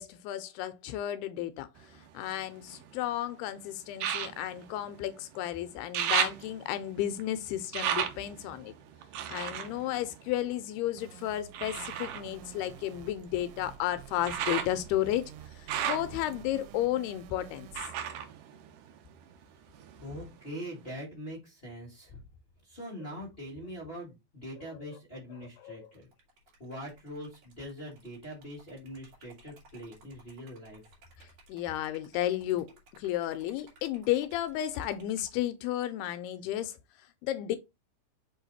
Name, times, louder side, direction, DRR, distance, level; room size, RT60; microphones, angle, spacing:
voice 1, 0.0-8.7 9.3-17.7 25.6-25.9 31.2-32.7 32.9-36.8 37.2-37.6, left 13 dB, 80° left, 2.5 m, -33 dB
sound 1, 1.8-3.1 3.9-5.5 5.7-10.9 11.5-19.4 19.7-20.5 21.0-21.1, right 9 dB, 75° right, 2.0 m, -36 dB
sound 2, 11.0-17.8, right 11 dB, 90° right, 2.8 m, -50 dB
voice 2, 20.0-22.2 22.6-26.1 26.6-30.8, equal, 30° left, 1.1 m, -43 dB
Liquid, 25.8-35.4, right 2 dB, 50° right, 3.2 m, -59 dB
6.3 x 4.4 x 4.1 m
omnidirectional pair, 4.8 m